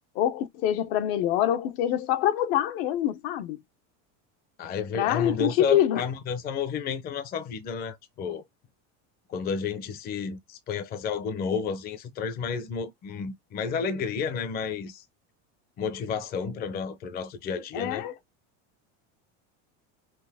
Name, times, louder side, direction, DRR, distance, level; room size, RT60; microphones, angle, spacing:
voice 1, 0.1-3.6 4.9-6.0 17.7-18.1, left 11 dB, 65° left, 1.0 m, -25 dB
voice 2, 4.6-8.4 9.3-15.0 15.8-18.1, left 5 dB, 25° left, 0.7 m, -31 dB
6.0 x 2.6 x 3.4 m
cardioid pair, 175°, 35 cm